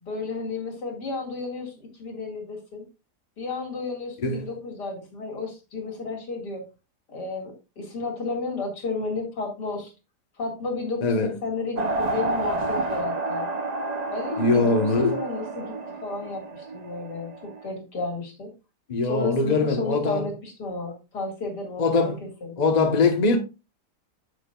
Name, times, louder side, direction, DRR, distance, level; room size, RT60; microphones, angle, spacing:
voice 1, 0.0-2.8 3.4-6.6 7.1-9.9 10.4-13.5 14.1-15.7 16.0-18.5 19.0-22.5, left 3 dB, 80° left, 2.8 m, -32 dB
voice 2, 11.0-11.3 14.4-15.2 18.9-20.3 21.8-22.2 22.6-23.4, left 3 dB, 30° left, 1.1 m, -22 dB
sound 1, 11.8-17.7, right 2 dB, 35° right, 0.7 m, -30 dB
9.4 x 7.1 x 2.4 m
omnidirectional pair, 1.8 m